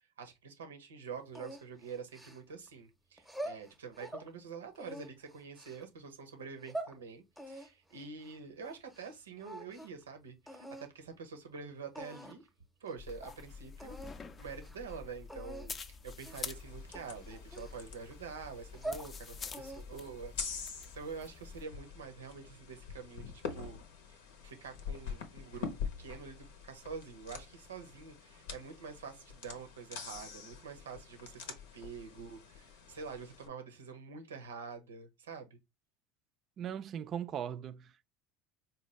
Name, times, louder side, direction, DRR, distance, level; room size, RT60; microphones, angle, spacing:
voice 1, 0.2-12.5 12.8-14.0 14.4-23.8 24.1-25.7 26.0-35.6, right 5 dB, 90° right, 0.7 m, -47 dB
sound 1, 1.3-2.7 3.2-4.3 4.7-5.8 6.4-7.0 7.4-9.1 9.4-10.0 10.5-10.9 11.5-11.6 11.9-12.5 12.9-13.0 13.2-13.4 13.8-14.2 14.5-14.8 15.3-15.7 16.2-16.5 16.9-18.1 18.6-19.1 19.5-20.0, right 1 dB, ahead, 0.7 m, -45 dB
sound 2, 13.0-21.7, left 5 dB, 35° left, 0.4 m, -47 dB
sound 3, 16.3-33.5, left 6 dB, 75° left, 0.7 m, -46 dB
voice 2, 36.6-38.1, right 9 dB, 45° right, 0.4 m, -39 dB
4.1 x 2.2 x 3.2 m
hypercardioid pair, 80°, 0 cm